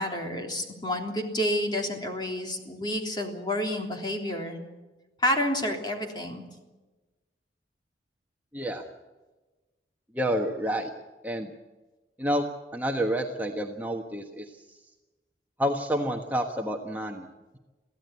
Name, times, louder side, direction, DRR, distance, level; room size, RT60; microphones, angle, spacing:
voice 1, 0.0-4.6 5.2-6.4, left 1 dB, 25° left, 2 dB, 3.4 m, -29 dB
voice 2, 8.5-8.9 10.1-10.9 11.2-11.5 12.2-12.5 12.7-14.4 15.6-17.3, equal, 10° right, 1 dB, 1.3 m, -29 dB
23.5 x 16.0 x 8.3 m, 1.2 s
head